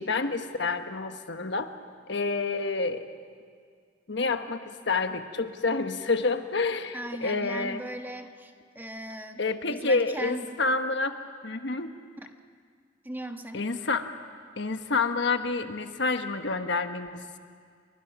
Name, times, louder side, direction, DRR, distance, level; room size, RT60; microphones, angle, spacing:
voice 1, 0.0-1.7 2.1-3.0 4.1-7.8 9.4-11.2 11.4-11.9 13.5-14.1 14.6-17.2, left 3 dB, 65° left, 8 dB, 1.2 m, -28 dB
voice 2, 6.9-9.4 9.7-10.5 12.2-12.3 13.0-13.6, right 1 dB, 10° right, 5 dB, 1.2 m, -38 dB
30.0 x 24.0 x 6.0 m, 2.1 s
head